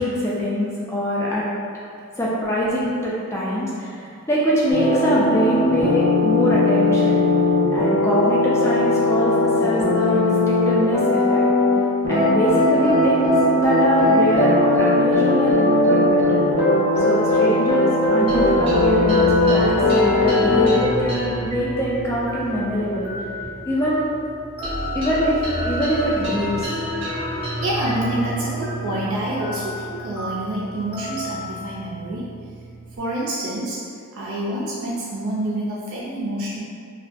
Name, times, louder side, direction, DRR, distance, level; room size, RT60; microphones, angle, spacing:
voice 1, 0.0-1.5 2.2-3.9 4.3-7.2 7.7-11.4 12.1-16.5 17.0-23.1 23.7-24.1 24.6-25.4 25.6-26.7, equal, 15° left, -7 dB, 0.3 m, -23 dB
sound 1, 4.7-11.8 12.0-20.7, left 2 dB, 45° left, 0.6 m, -18 dB
voice 2, 16.9-17.7 27.6-32.3 33.0-33.8 34.1-36.6, right 1 dB, 70° right, -6 dB, 0.4 m, -28 dB
sound 2, 18.3-33.0, equal, 25° right, 0.7 m, -30 dB
2.5 x 2.2 x 2.4 m, 2.3 s
head